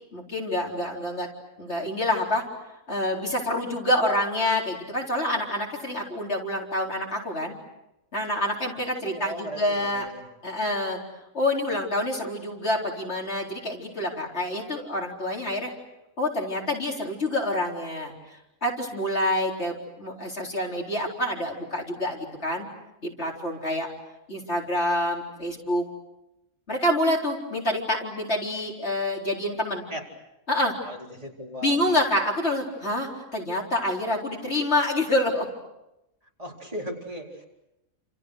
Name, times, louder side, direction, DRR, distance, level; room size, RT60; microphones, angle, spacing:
voice 1, 0.1-1.3 1.6-2.4 2.9-7.5 8.1-10.1 10.4-11.0 11.3-15.7 16.2-18.1 18.6-22.7 23.0-23.9 24.3-25.8 26.7-29.9 30.5-30.7 31.6-35.5, left 1 dB, 50° left, -1 dB, 4.5 m, -27 dB
voice 2, 9.0-10.3 29.9-30.1 30.8-31.8 36.4-37.4, equal, 25° right, -2 dB, 4.4 m, -37 dB
29.5 x 28.0 x 6.5 m, 0.90 s
omnidirectional pair, 1.4 m